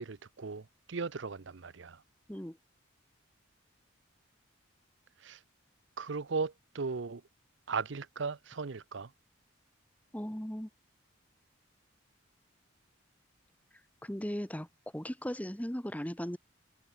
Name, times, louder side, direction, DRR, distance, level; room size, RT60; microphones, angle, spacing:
voice 1, 0.0-2.0 5.2-5.4 6.0-7.2 7.7-9.1, right 4 dB, 60° right, 0.7 m, -37 dB
voice 2, 10.1-10.7 14.0-14.7 14.9-16.4, equal, 5° left, 1.2 m, -37 dB
head